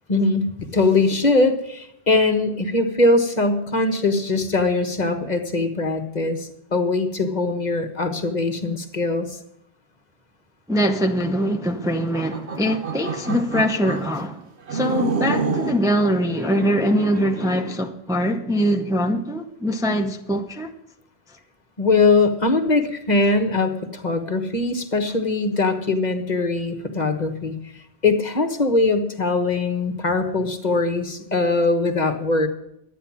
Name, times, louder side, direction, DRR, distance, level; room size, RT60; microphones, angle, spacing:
voice 1, 0.1-9.4 21.8-27.6 28.0-32.5, left 3 dB, 40° left, 1.3 m, -21 dB
voice 2, 10.7-14.4 14.7-20.7, equal, 5° right, 0.7 m, -22 dB
sound 1, 12.0-14.1 14.7-15.8 16.4-17.8, right 4 dB, 85° right, 1.4 m, -28 dB
12.5 x 9.5 x 7.3 m
omnidirectional pair, 1.1 m